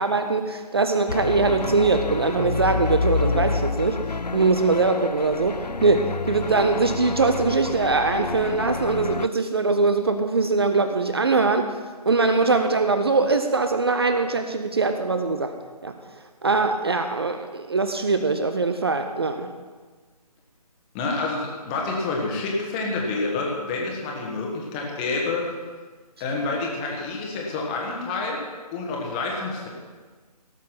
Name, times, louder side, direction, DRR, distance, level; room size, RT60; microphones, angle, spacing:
voice 1, 0.0-4.0 4.3-11.7 12.1-15.5 15.8-16.0 16.4-19.5, right 3 dB, 40° right, 8 dB, 0.7 m, -22 dB
sound 1, 1.1-9.3, left 4 dB, 85° left, 0.5 m, -28 dB
voice 2, 20.9-25.5 26.2-28.5 28.7-29.7, left 3 dB, 10° left, -1 dB, 1.4 m, -28 dB
17.0 x 7.3 x 5.9 m, 1.4 s
figure-of-eight pair, 150°, 21 cm